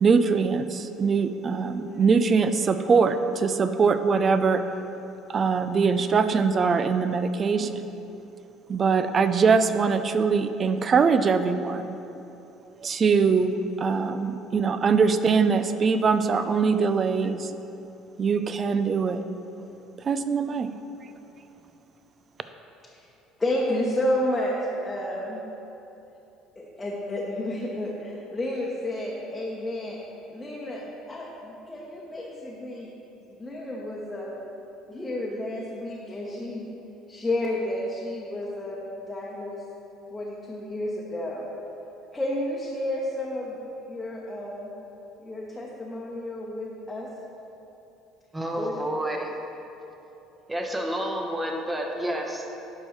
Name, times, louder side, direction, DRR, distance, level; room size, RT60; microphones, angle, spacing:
voice 1, 0.0-4.6 5.3-7.8 8.7-11.9 12.8-17.5 18.2-19.2 20.1-20.7, right 5 dB, 40° right, 10 dB, 0.4 m, -22 dB
voice 2, 23.4-25.4 26.6-30.0 30.3-32.9 33.3-34.4 34.9-36.7 37.1-38.8 39.1-39.6 40.1-41.5 42.1-43.6 43.9-44.7 45.2-47.1 48.6-48.8, left 1 dB, 20° left, -4 dB, 1.0 m, -31 dB
voice 3, 48.3-49.3 50.5-52.5, equal, 15° right, 1 dB, 1.1 m, -29 dB
11.5 x 4.6 x 3.2 m, 3.0 s
hypercardioid pair, 60°, 0 cm